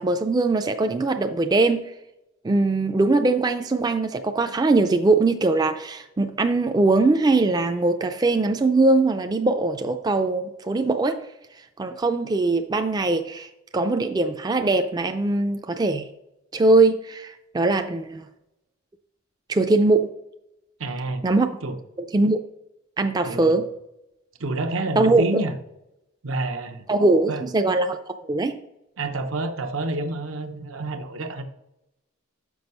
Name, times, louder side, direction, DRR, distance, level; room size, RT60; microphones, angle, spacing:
voice 1, 0.0-1.9 2.4-11.2 11.8-16.1 16.5-18.2 19.5-20.1 21.2-21.5 22.1-22.4 23.0-23.7 25.0-25.4 26.9-28.0 28.3-28.6, right 2 dB, 20° right, 6 dB, 0.3 m, -21 dB
voice 2, 20.8-21.3 21.6-21.8 23.2-23.6 24.4-25.5 26.2-26.8 27.3-27.4 29.0-31.4, right 2 dB, 85° right, 6 dB, 0.8 m, -28 dB
6.1 x 5.4 x 5.4 m, 0.87 s
head